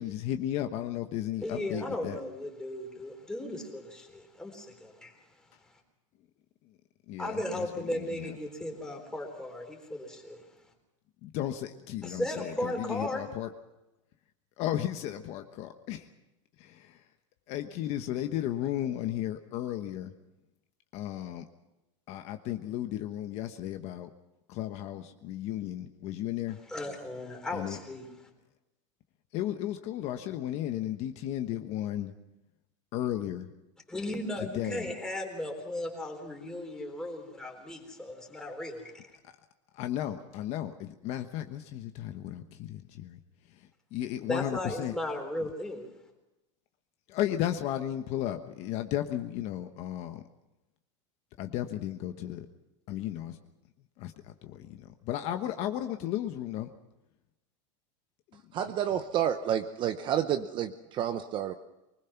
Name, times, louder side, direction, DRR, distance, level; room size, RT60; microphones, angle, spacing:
voice 1, 0.0-2.2 7.1-7.7 7.9-8.3 11.2-13.5 14.6-16.1 16.6-17.0 17.5-20.1 20.9-21.4 22.1-24.1 24.5-26.6 27.5-27.8 29.3-32.1 32.9-33.5 34.4-34.9 39.7-43.2 43.9-44.9 47.1-50.2 51.4-52.5 52.9-53.4 54.0-54.1 54.4-56.7 58.3-58.7, left 12 dB, 40° left, 7 dB, 1.2 m, -34 dB
voice 2, 1.4-5.2 7.2-10.4 12.0-13.2 26.7-28.1 33.9-39.0 44.3-45.9, left 1 dB, 5° left, 2 dB, 3.7 m, -36 dB
voice 3, 58.5-61.5, right 10 dB, 30° right, 9 dB, 0.8 m, -30 dB
24.5 x 20.0 x 5.9 m, 0.96 s
supercardioid pair, 155°, 16 cm